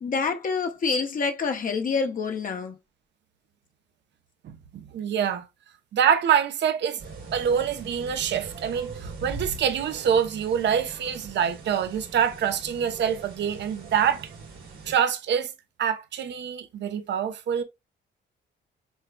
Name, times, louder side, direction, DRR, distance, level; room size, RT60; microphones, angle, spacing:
voice 1, 0.0-2.7, left 5 dB, 45° left, 0.7 m, -27 dB
voice 2, 4.4-5.5 5.9-7.0 7.3-14.3 14.9-15.5 15.8-17.6, right 8 dB, 65° right, 0.8 m, -25 dB
sound 1, 7.0-14.9, right 3 dB, 85° right, 2.6 m, -41 dB
6.3 x 2.3 x 2.2 m
cardioid pair, 90°, 20 cm